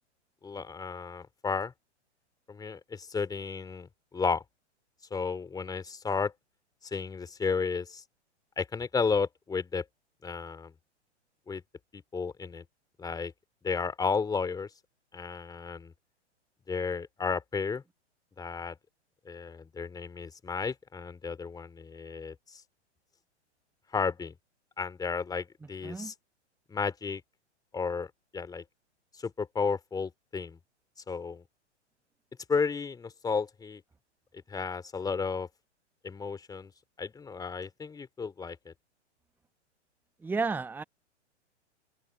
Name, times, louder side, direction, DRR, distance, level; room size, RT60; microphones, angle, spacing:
voice 1, 0.4-1.7 2.5-4.4 5.1-6.3 6.8-8.0 8.6-9.8 10.2-10.7 11.5-11.6 11.9-12.6 13.0-13.3 13.6-14.7 15.1-15.9 16.7-17.8 18.4-18.8 19.2-22.6 23.9-24.3 24.8-26.1 26.7-27.2 27.7-28.6 29.2-30.6 31.1-31.4 32.5-33.8 34.5-35.5 36.0-36.7 37.0-38.7, left 5 dB, 10° left, 3.1 m, -33 dB
voice 2, 40.2-40.8, right 4 dB, 5° right, 1.1 m, -32 dB
open air
figure-of-eight pair, 105°, 35 cm